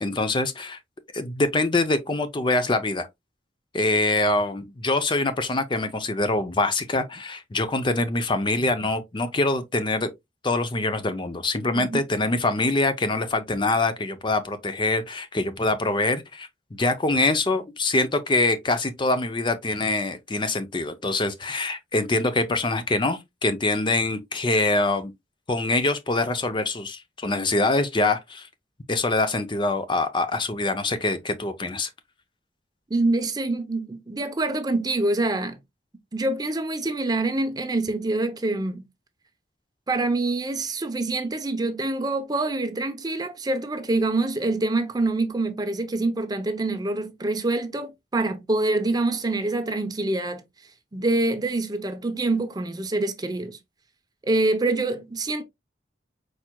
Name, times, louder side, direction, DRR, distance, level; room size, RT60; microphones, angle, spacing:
voice 1, 0.0-0.8 1.1-3.1 3.7-10.1 10.4-25.1 25.5-28.5 28.9-31.9, left 2 dB, 25° left, 0.6 m, -24 dB
voice 2, 32.9-35.6 36.1-38.8 39.9-50.4 50.9-53.6 54.2-55.4, right 2 dB, 20° right, 0.6 m, -25 dB
4.7 x 4.4 x 2.2 m
head